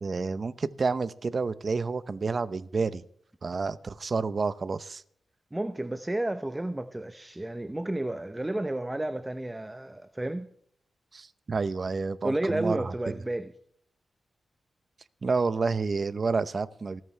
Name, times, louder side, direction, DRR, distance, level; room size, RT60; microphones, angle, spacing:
voice 1, 0.0-3.0 3.4-5.0 11.1-12.9 15.2-17.0, right 4 dB, 50° right, 15 dB, 0.8 m, -29 dB
voice 2, 5.5-10.5 12.2-13.5, right 1 dB, 15° right, 10 dB, 0.8 m, -31 dB
27.5 x 9.2 x 3.3 m, 0.62 s
cardioid pair, 85°, 0 cm